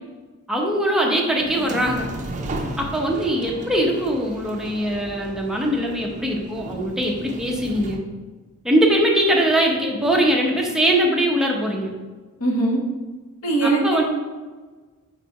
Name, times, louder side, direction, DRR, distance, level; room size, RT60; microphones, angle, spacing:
voice 1, 0.5-2.1 2.8-8.0 8.6-11.9 13.6-14.0, right 1 dB, 5° right, -1 dB, 0.8 m, -21 dB
sound 1, 1.4-8.0, right 1 dB, 35° right, 0.6 m, -35 dB
voice 2, 12.4-12.8 13.4-14.0, right 2 dB, 85° left, -1 dB, 1.5 m, -20 dB
4.9 x 4.6 x 5.4 m, 1.3 s
head